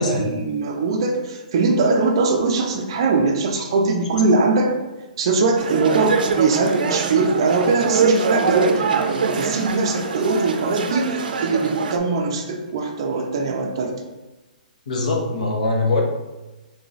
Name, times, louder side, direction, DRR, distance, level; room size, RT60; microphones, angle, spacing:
voice 1, 0.0-4.7 5.2-13.9, right 3 dB, 35° right, 3 dB, 0.4 m, -21 dB
sound 1, 5.6-12.0, right 4 dB, 85° right, 0.5 m, -23 dB
voice 2, 14.9-16.0, left 2 dB, 55° left, 0 dB, 1.0 m, -22 dB
3.8 x 2.9 x 4.0 m, 1.1 s
hypercardioid pair, 180°, 5 cm